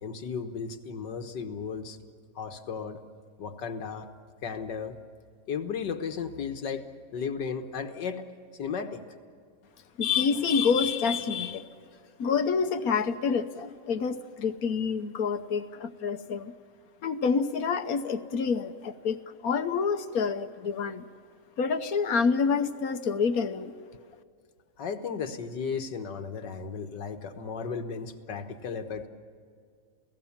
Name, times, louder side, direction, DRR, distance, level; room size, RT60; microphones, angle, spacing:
voice 1, 0.0-2.0 2.4-3.0 3.4-4.1 4.4-5.0 5.5-6.9 7.1-8.3 8.6-9.0 24.8-29.1, left 6 dB, 85° left, 7 dB, 2.0 m, -35 dB
voice 2, 10.0-11.7 12.2-16.5 17.0-21.0 21.6-23.7, left 5 dB, 60° left, 10 dB, 1.3 m, -27 dB
28.5 x 17.5 x 7.3 m, 2.1 s
omnidirectional pair, 1.8 m